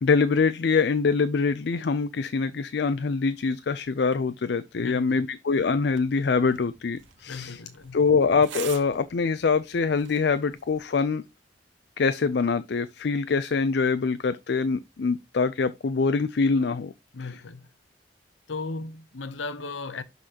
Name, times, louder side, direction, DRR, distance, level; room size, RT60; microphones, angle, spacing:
voice 1, 0.0-7.6 7.9-11.2 12.0-16.9 17.2-17.4, left 4 dB, 60° left, 0.4 m, -24 dB
voice 2, 4.8-5.3 7.3-8.0 17.1-17.7 18.5-20.0, left 3 dB, 85° left, 0.8 m, -36 dB
sound 1, 5.8-10.8, right 9 dB, 85° right, 1.0 m, -45 dB
11.0 x 4.0 x 2.9 m
head